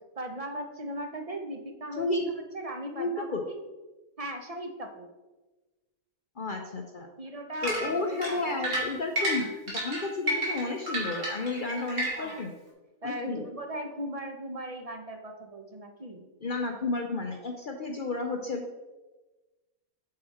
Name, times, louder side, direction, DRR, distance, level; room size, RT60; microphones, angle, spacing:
voice 1, 0.2-3.4 4.2-5.1 7.2-8.8 12.1-12.5 13.0-16.3, right 1 dB, 35° right, 3 dB, 0.7 m, -38 dB
voice 2, 3.0-3.5 6.4-7.1 7.6-9.5 9.7-12.5 13.0-13.5 16.4-18.6, left 3 dB, 55° left, 3 dB, 0.6 m, -32 dB
sound 1, 7.6-12.4, right 1 dB, 80° right, 2.5 m, -31 dB
7.7 x 4.8 x 4.2 m, 1.2 s
omnidirectional pair, 1.5 m